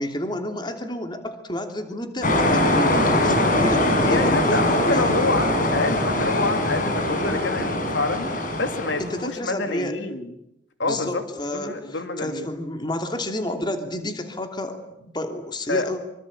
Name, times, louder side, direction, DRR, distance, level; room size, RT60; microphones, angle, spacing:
voice 1, 0.0-5.1 9.0-10.0 10.8-16.0, left 1 dB, 25° left, 5 dB, 2.9 m, -30 dB
sound 1, 2.2-9.3, left 1 dB, 45° left, 5.2 m, -22 dB
voice 2, 4.0-8.3 8.6-10.3 10.8-11.2 11.5-12.5 15.7-15.9, left 3 dB, 80° left, 7 dB, 3.0 m, -27 dB
25.5 x 25.5 x 8.7 m, 0.83 s
head